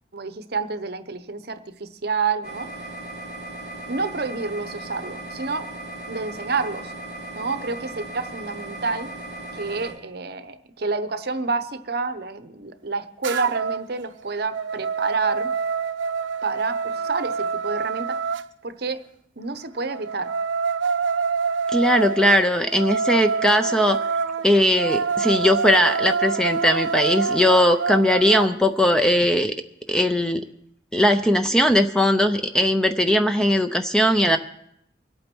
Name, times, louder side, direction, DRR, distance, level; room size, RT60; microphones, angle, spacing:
voice 1, 0.1-2.7 3.9-5.7 6.1-6.9 7.4-9.1 9.5-15.5 16.4-18.2 18.6-19.0 19.4-20.3, right 4 dB, 55° right, 10 dB, 0.9 m, -29 dB
sound 1, 2.4-9.9, right 2 dB, 55° left, 3.7 m, -37 dB
sound 2, 13.2-13.9 14.3-18.5 19.9-28.5, right 5 dB, 85° right, 0.5 m, -26 dB
voice 2, 21.7-24.0 24.4-29.5 29.9-30.4 30.9-34.4, equal, 5° left, 8 dB, 0.5 m, -19 dB
24.0 x 8.8 x 4.5 m, 0.73 s
head